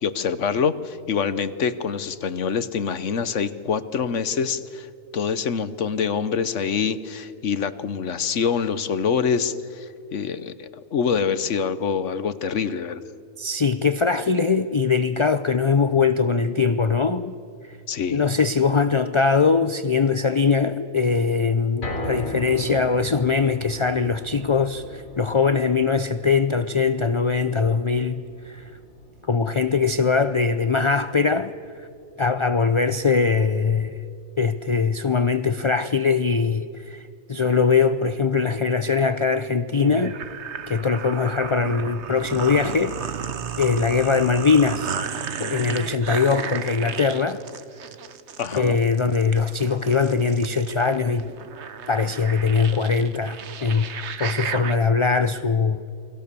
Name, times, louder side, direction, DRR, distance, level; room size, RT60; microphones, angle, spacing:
voice 1, 0.0-4.9 5.1-13.0 17.9-18.2 48.4-48.8, left 6 dB, 65° left, 1.2 m, -25 dB
voice 2, 13.4-17.4 18.1-28.7 29.3-31.5 32.2-34.0 34.4-40.2 40.7-43.3 43.6-45.0 45.4-47.4 48.6-51.3 51.9-53.9 54.2-55.8, left 5 dB, 40° left, 0.4 m, -21 dB
sound 1, 21.8-34.1 34.5-34.6 35.0-35.1, left 1 dB, 85° left, 3.2 m, -39 dB
sound 2, 39.8-54.8, right 7 dB, 60° right, 1.2 m, -33 dB
29.0 x 22.0 x 6.9 m
omnidirectional pair, 1.4 m